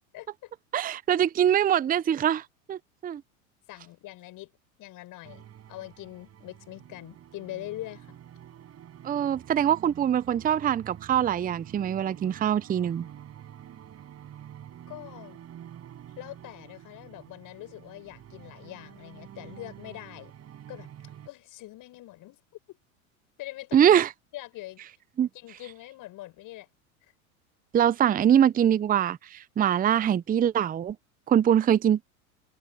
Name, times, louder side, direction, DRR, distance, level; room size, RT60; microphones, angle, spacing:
voice 1, 0.1-0.5 3.7-4.5 4.8-8.2 14.9-15.4 16.2-20.3 20.7-22.4 22.7-22.8 23.4-23.9 24.3-24.8 25.3-26.7 27.0-27.1, left 17 dB, 45° left, 6.7 m, -43 dB
voice 2, 0.7-3.2 9.0-13.1 23.7-24.1 25.2-25.3 27.7-31.0 31.3-32.0, right 9 dB, 20° right, 0.7 m, -23 dB
sound 1, 5.2-21.3, right 10 dB, 35° right, 6.6 m, -48 dB
hypercardioid pair, 95°, 42 cm